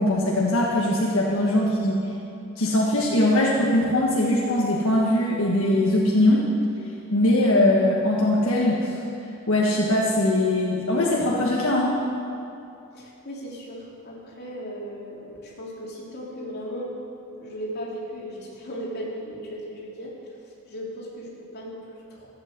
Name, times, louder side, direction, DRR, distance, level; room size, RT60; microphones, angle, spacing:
voice 1, 0.0-2.0 2.6-6.4 7.1-9.0 9.5-12.0, left 1 dB, 80° left, -4 dB, 1.6 m, -21 dB
voice 2, 12.9-16.9 17.4-20.1 20.7-22.3, equal, 50° left, -4 dB, 3.1 m, -36 dB
14.5 x 8.8 x 7.5 m, 2.7 s
head